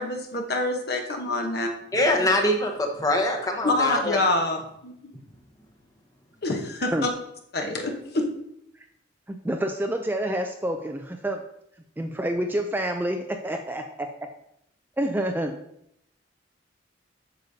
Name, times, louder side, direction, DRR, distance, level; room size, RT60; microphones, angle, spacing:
voice 1, 0.0-1.7 3.6-4.9 6.4-7.1 7.5-8.3, left 2 dB, 55° left, 3 dB, 1.0 m, -26 dB
voice 2, 1.9-4.2, left 1 dB, 20° left, 3 dB, 0.9 m, -23 dB
voice 3, 9.3-11.4 12.0-13.8 15.0-15.6, right 1 dB, 10° right, 5 dB, 0.3 m, -28 dB
8.1 x 6.6 x 2.7 m, 0.76 s
head